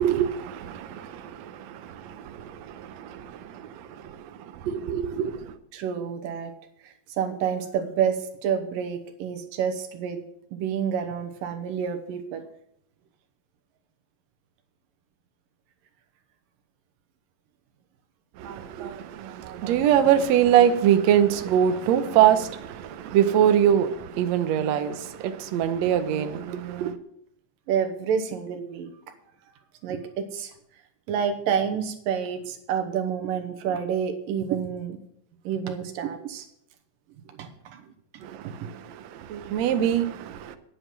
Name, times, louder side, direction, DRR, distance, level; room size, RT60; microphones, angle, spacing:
voice 1, 0.0-5.5 18.4-26.9 38.2-40.6, right 10 dB, 70° right, 1.7 m, -24 dB
voice 2, 5.7-6.5 6.8-10.2 10.5-12.4 27.7-28.9 29.8-30.5 31.1-35.0 35.4-36.5 37.3-37.8 38.1-38.7, right 7 dB, 85° right, 2.8 m, -29 dB
9.9 x 8.9 x 6.0 m
omnidirectional pair, 3.9 m